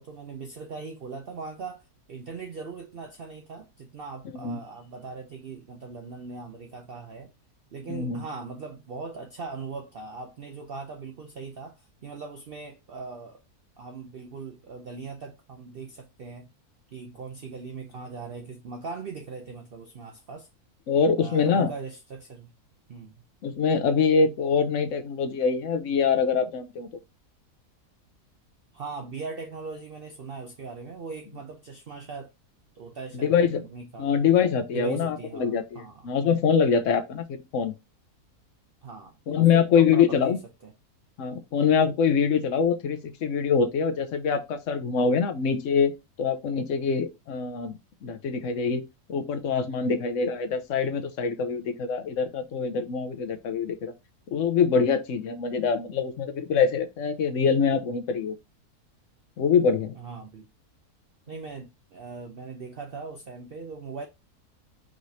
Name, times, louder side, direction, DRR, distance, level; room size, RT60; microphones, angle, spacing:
voice 1, 0.0-7.3 7.7-13.4 13.8-16.5 16.9-20.5 21.2-22.5 22.9-23.1 28.7-32.3 32.7-34.1 34.7-36.1 38.8-40.7 60.0-60.5 61.3-64.1, right 4 dB, 65° right, 0.5 m, -40 dB
voice 2, 7.9-8.2 20.9-21.7 23.4-26.9 33.1-33.6 34.0-37.7 39.3-40.4 41.2-45.9 46.2-48.8 49.1-53.9 54.3-58.4 59.4-60.0, left 6 dB, 60° left, 1.0 m, -24 dB
5.0 x 3.1 x 2.7 m
omnidirectional pair, 1.6 m